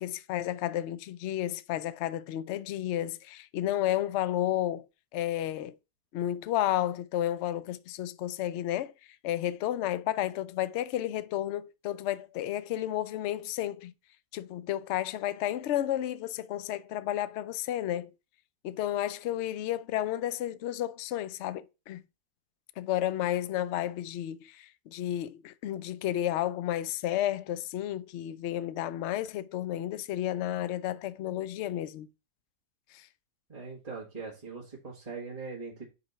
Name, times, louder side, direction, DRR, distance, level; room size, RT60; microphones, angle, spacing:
voice 1, 0.0-4.9 5.1-5.8 6.1-8.9 9.2-13.9 14.3-18.1 18.6-22.0 22.8-32.1 32.9-33.1, left 12 dB, 70° left, 0.6 m, -32 dB
voice 2, 33.5-35.8, right 4 dB, 25° right, 1.6 m, -41 dB
5.4 x 4.2 x 5.4 m
omnidirectional pair, 1.7 m